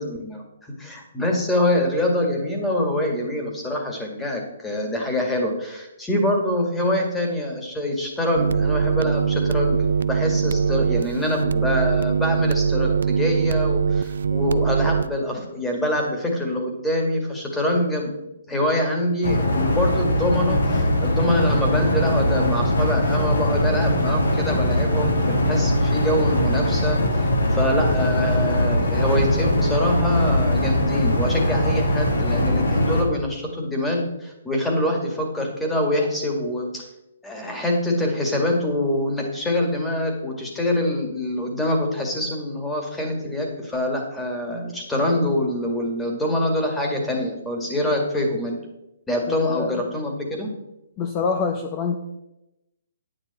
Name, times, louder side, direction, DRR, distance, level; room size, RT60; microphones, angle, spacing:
voice 1, 0.0-18.1 18.5-36.8 37.2-48.6 49.1-50.5, left 1 dB, 5° left, 0 dB, 2.0 m, -25 dB
sound 1, 8.3-15.1, right 6 dB, 75° right, 0.4 m, -22 dB
sound 2, 19.2-33.0, left 1 dB, 85° left, 2.2 m, -21 dB
voice 2, 49.3-49.9 51.0-52.0, left 5 dB, 25° left, 4 dB, 0.8 m, -25 dB
9.4 x 9.2 x 4.2 m, 0.91 s
hypercardioid pair, 155°, 0 cm